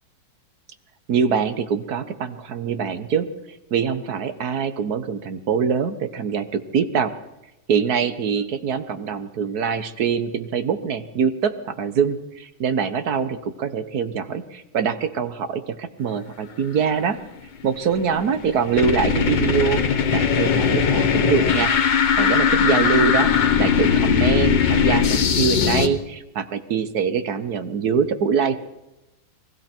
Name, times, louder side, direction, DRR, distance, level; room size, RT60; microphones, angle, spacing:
voice 1, 1.1-3.3 3.7-7.1 7.7-17.2 17.6-21.8 22.2-28.6, right 6 dB, 60° right, 11 dB, 1.5 m, -24 dB
sound 1, 17.8-25.9, left 7 dB, 75° left, 1.9 m, -19 dB
29.5 x 20.5 x 4.5 m, 0.97 s
omnidirectional pair, 2.0 m